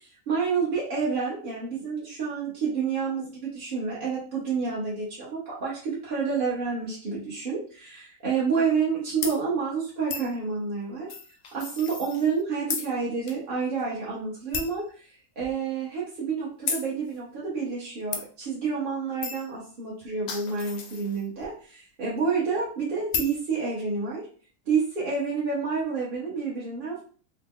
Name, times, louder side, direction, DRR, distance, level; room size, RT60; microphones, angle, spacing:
voice 1, 0.3-11.1 11.5-24.3 24.7-27.0, right 5 dB, 45° right, -7 dB, 0.8 m, -29 dB
sound 1, 9.2-9.4 10.1-10.3 11.1-12.4 12.7-12.9 13.3-13.4 13.8-13.9 14.5-14.8 15.4-15.5 16.7-16.9 18.1-18.2 19.2-19.5 20.0-21.4 23.1-23.4, left 6 dB, 65° left, 0.8 m, -33 dB
2.9 x 2.0 x 3.6 m, 0.43 s
omnidirectional pair, 1.4 m